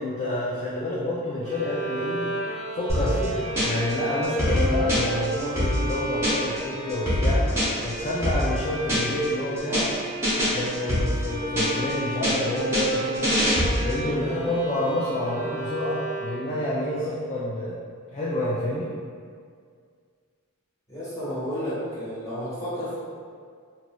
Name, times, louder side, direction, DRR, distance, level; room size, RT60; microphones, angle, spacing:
voice 1, 0.0-2.3 2.7-7.4 7.8-9.9 10.5-13.3 13.8-17.8 18.1-18.9, left 1 dB, 30° left, -7 dB, 0.3 m, -28 dB
Bowed string instrument, 1.4-16.7, right 1 dB, 65° right, 0.7 m, -33 dB
sound 1, 2.9-3.9 4.2-6.6 6.9-9.3 9.6-9.9 10.2-11.9 12.2-14.0, equal, 10° right, 0.8 m, -24 dB
voice 2, 14.1-14.5 17.0-17.2 20.9-23.0, equal, 15° left, -12 dB, 1.0 m, -32 dB
2.9 x 2.6 x 2.2 m, 2.1 s
head